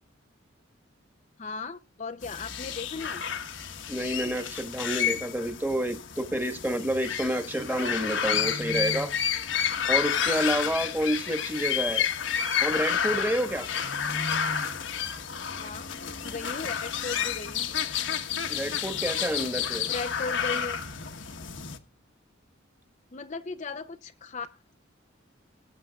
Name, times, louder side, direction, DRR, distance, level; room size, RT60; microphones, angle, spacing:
voice 1, 1.4-3.2 15.6-15.9 16.2-17.7 19.9-20.8 23.1-24.7, left 4 dB, 35° left, 8 dB, 0.6 m, -37 dB
sound 1, 2.2-21.8, left 8 dB, 65° left, 1.2 m, -30 dB
voice 2, 3.9-9.1 9.9-12.1 12.6-13.7 18.5-19.9, right 1 dB, 10° right, 8 dB, 1.5 m, -29 dB
20.0 x 9.1 x 2.4 m, 0.27 s
head